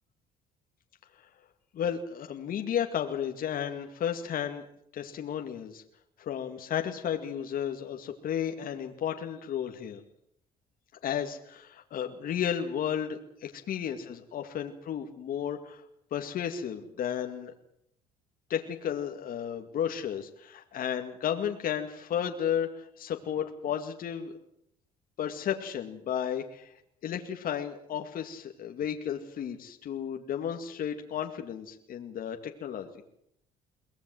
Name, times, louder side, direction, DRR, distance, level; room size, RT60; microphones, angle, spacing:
voice 1, 1.7-4.6 4.9-5.8 6.2-10.0 11.0-15.8 16.1-17.5 18.5-24.4 25.2-26.7 27.0-32.9, left 9 dB, 60° left, 5 dB, 2.2 m, -33 dB
23.5 x 19.0 x 7.8 m, 0.73 s
cardioid pair, 110°, 17 cm